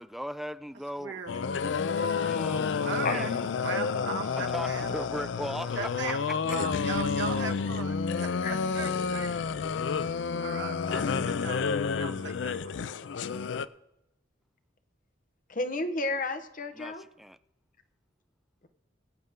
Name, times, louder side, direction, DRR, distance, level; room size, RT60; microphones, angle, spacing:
voice 1, 0.0-1.2 2.2-3.3 4.5-5.8 6.0-6.2 16.7-17.4, equal, ahead, 0.3 m, -38 dB
voice 2, 1.0-1.3 2.8-5.0 5.7-9.4 10.4-11.6 11.9-12.7, right 4 dB, 65° right, 1.5 m, -38 dB
sound 1, 1.3-13.7, left 5 dB, 70° left, 0.4 m, -30 dB
voice 3, 15.5-17.0, left 2 dB, 45° left, 1.0 m, -31 dB
22.5 x 8.0 x 3.6 m
head